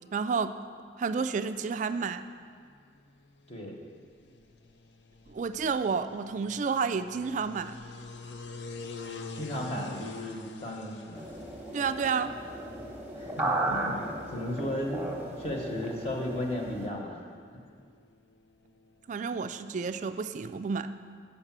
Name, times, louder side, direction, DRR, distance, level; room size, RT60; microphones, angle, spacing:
voice 1, 0.1-0.5 1.0-2.2 5.3-7.7 11.7-12.3 19.1-20.9, right 5 dB, 45° right, 11 dB, 0.3 m, -30 dB
sound 1, 2.2-20.1, left 3 dB, 75° left, 0.6 m, -48 dB
voice 2, 9.3-11.2 13.2-17.2, left 1 dB, 35° left, 0 dB, 1.0 m, -35 dB
sound 2, 11.1-16.9, right 1 dB, 10° right, 0.9 m, -35 dB
6.7 x 5.7 x 7.3 m, 2.1 s
head